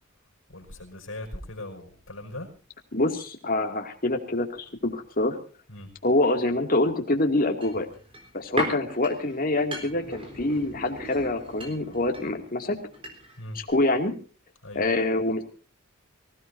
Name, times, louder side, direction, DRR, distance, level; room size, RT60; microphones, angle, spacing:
voice 1, 0.5-2.5 5.7-5.9 13.4-13.6 14.6-14.8, left 1 dB, 70° left, 3 dB, 5.4 m, -39 dB
voice 2, 2.9-5.4 6.0-7.9 8.3-12.8 13.5-14.1 14.7-15.4, left 2 dB, 45° left, 4 dB, 2.4 m, -25 dB
sound 1, 7.6-13.4 13.7-13.8, equal, 25° right, 4.0 m, -37 dB
25.0 x 16.5 x 2.7 m, 0.37 s
head